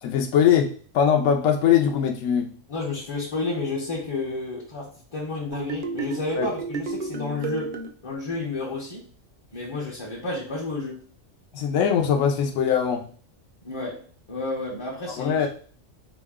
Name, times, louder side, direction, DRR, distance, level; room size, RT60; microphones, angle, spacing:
voice 1, 0.0-2.4 6.4-6.5 11.5-13.0 15.2-15.5, left 8 dB, 80° left, 1.0 m, -21 dB
voice 2, 2.7-7.8 8.0-9.0 9.5-11.0 13.6-15.5, left 3 dB, 30° left, 0.6 m, -31 dB
sound 1, 5.5-7.9, right 4 dB, 70° right, 0.5 m, -31 dB
3.9 x 2.1 x 3.5 m
omnidirectional pair, 1.4 m